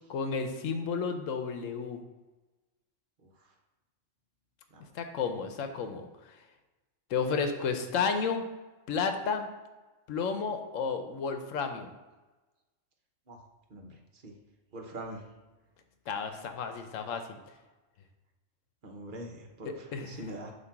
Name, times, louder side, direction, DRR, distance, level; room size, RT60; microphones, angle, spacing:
voice 1, 0.1-2.0 4.9-6.4 7.1-8.4 8.9-9.5 10.1-11.9 16.1-17.4 19.6-20.2, left 5 dB, 80° left, 7 dB, 1.1 m, -32 dB
voice 2, 13.7-14.3 14.7-15.3 18.8-20.5, right 1 dB, 45° right, 2 dB, 1.0 m, -43 dB
8.1 x 2.9 x 5.8 m, 1.2 s
omnidirectional pair, 1.3 m